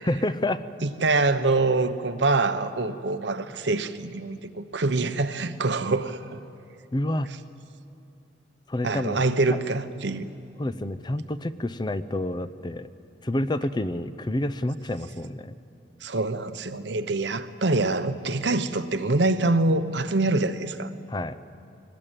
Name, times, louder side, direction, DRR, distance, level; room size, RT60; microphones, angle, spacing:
voice 1, 0.0-0.7 6.9-7.3 8.7-9.2 9.5-9.6 10.6-12.9 13.2-15.6 21.1-21.4, left 1 dB, 25° left, 13 dB, 0.6 m, -28 dB
voice 2, 0.8-6.4 8.8-10.3 16.0-20.9, right 2 dB, 70° right, 10 dB, 1.0 m, -25 dB
22.5 x 19.0 x 8.9 m, 2.6 s
head